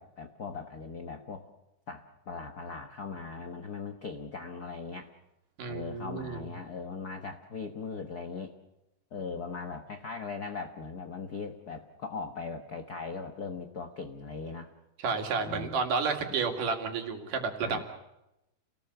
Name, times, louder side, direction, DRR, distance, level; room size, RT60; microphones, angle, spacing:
voice 1, 0.0-1.5 1.9-5.1 5.7-8.5 9.1-14.7 15.4-15.8 16.2-16.4 17.6-17.8, left 4 dB, 75° left, 6 dB, 0.8 m, -39 dB
voice 2, 5.6-6.5 15.0-17.8, right 5 dB, 80° right, 4 dB, 3.8 m, -31 dB
29.5 x 18.5 x 6.9 m, 0.91 s
omnidirectional pair, 3.7 m